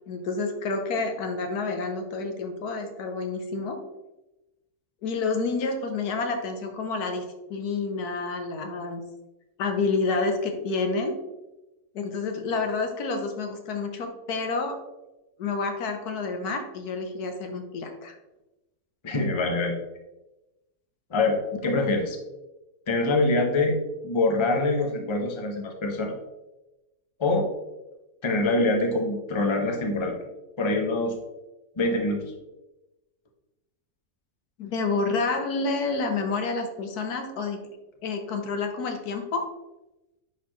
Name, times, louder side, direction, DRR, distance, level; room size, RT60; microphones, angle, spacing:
voice 1, 0.1-3.8 5.0-7.2 7.5-9.0 9.6-11.2 11.9-14.8 15.4-18.2 21.6-21.7 34.6-37.6 38.0-39.4, left 4 dB, 90° left, 6 dB, 1.5 m, -29 dB
voice 2, 19.0-19.7 21.1-22.2 22.9-23.8 24.0-26.2 27.2-27.5 28.2-30.2 30.6-31.1 31.8-32.2, left 2 dB, 25° left, 2 dB, 0.7 m, -24 dB
10.0 x 4.2 x 3.1 m, 1.0 s
omnidirectional pair, 1.6 m